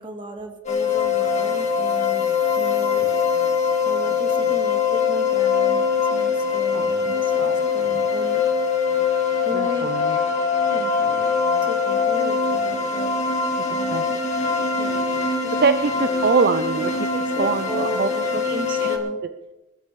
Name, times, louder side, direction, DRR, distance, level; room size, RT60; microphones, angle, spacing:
voice 1, 0.0-3.1 3.8-8.4 9.4-10.0 10.7-11.3 11.6-13.1 13.6-14.0 14.8-15.0 15.4-15.5 17.1-19.2, right 1 dB, 25° right, 5 dB, 1.7 m, -35 dB
sound 1, 0.6-19.0, left 5 dB, 40° left, 2.0 m, -22 dB
voice 2, 6.7-7.6 9.5-10.2 13.9-14.0 15.6-17.1 17.4-19.0, right 4 dB, 55° right, 10 dB, 0.5 m, -24 dB
22.0 x 13.0 x 3.2 m, 1.1 s
head